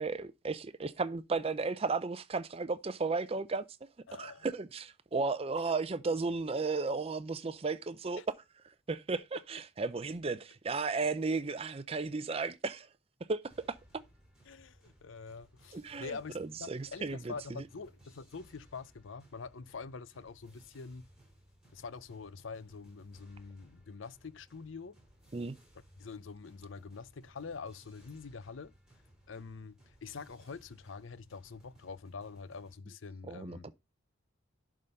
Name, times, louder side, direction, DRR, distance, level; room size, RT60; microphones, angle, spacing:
voice 1, 0.0-3.9 4.2-8.3 8.9-12.9 13.3-13.4 13.7-14.0 15.7-17.6 25.3-25.6 33.3-33.7, right 4 dB, 30° right, 0.5 m, -34 dB
voice 2, 4.1-4.5 8.2-8.3 14.5-21.1 21.7-25.0 26.0-28.7 29.3-33.7, left 5 dB, 75° left, 0.6 m, -45 dB
sound 1, 13.5-32.8, right 1 dB, 5° right, 3.7 m, -62 dB
11.0 x 3.8 x 5.3 m
head